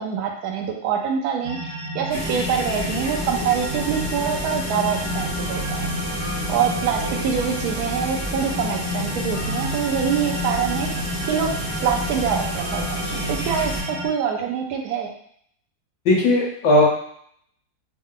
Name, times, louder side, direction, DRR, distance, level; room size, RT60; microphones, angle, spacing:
voice 1, 0.0-5.9 6.5-10.9 11.3-11.5 11.8-15.1, right 7 dB, 90° right, 1 dB, 0.8 m, -25 dB
sound 1, 1.4-14.1, left 1 dB, 65° right, 1.1 m, -30 dB
sound 2, 2.1-13.8, equal, 20° left, 0.5 m, -31 dB
voice 2, 16.0-16.8, left 1 dB, 65° left, -4 dB, 1.5 m, -17 dB
3.7 x 2.1 x 3.7 m, 0.65 s
omnidirectional pair, 2.3 m